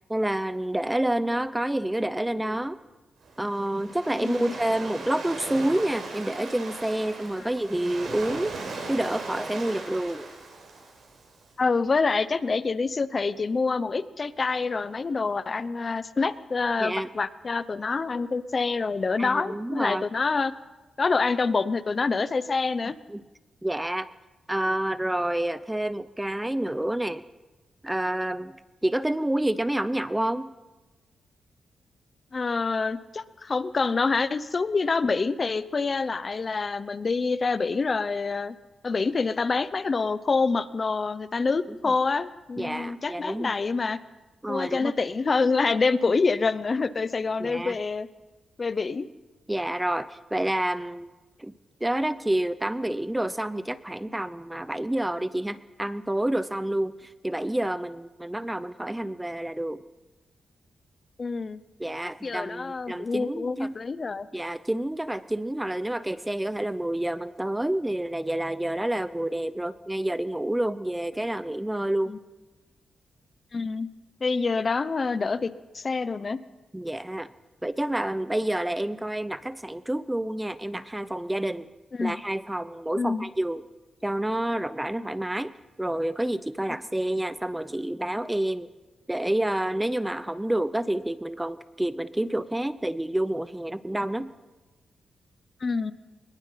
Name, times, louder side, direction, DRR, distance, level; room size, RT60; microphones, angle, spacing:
voice 1, 0.1-2.8 3.4-8.6 8.9-10.3 16.8-17.1 19.2-20.0 23.1-23.2 23.6-24.1 24.5-27.2 27.8-28.6 28.8-30.5 42.6-43.5 44.4-44.9 47.4-47.8 49.5-51.1 51.4-51.5 51.8-59.8 61.8-63.8 64.3-72.1 76.7-77.3 77.6-81.7 82.0-83.7 84.0-88.7 89.1-94.3, right 1 dB, 10° right, 15 dB, 0.7 m, -28 dB
Waves surf, 3.2-11.4, right 3 dB, 65° right, 6.6 m, -39 dB
voice 2, 4.2-4.5 11.6-20.5 21.0-22.9 32.3-38.6 38.8-44.0 44.5-48.1 48.6-49.1 61.2-61.6 62.2-64.3 72.1-72.2 73.5-73.9 74.2-76.4 81.9-82.2 83.0-83.3 95.6-95.9, left 4 dB, 35° left, 15 dB, 0.9 m, -26 dB
23.0 x 21.5 x 5.8 m, 1.2 s
cardioid pair, 100°, 0 cm